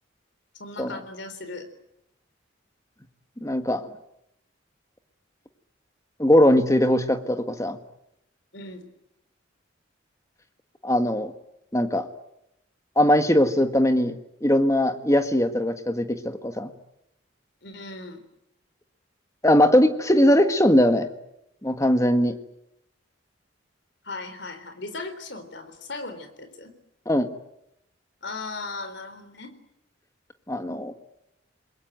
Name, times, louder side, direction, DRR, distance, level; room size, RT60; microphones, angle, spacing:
voice 1, 0.6-1.6 8.5-8.9 17.6-18.2 24.0-26.7 28.2-29.5, left 3 dB, 60° left, 9 dB, 3.8 m, -37 dB
voice 2, 3.4-3.8 6.2-7.8 10.8-11.3 11.7-12.1 12.9-16.7 19.4-21.1 21.6-22.3 27.1-27.3 30.5-30.9, left 1 dB, 15° left, 8 dB, 1.6 m, -20 dB
28.5 x 21.5 x 9.2 m, 0.83 s
head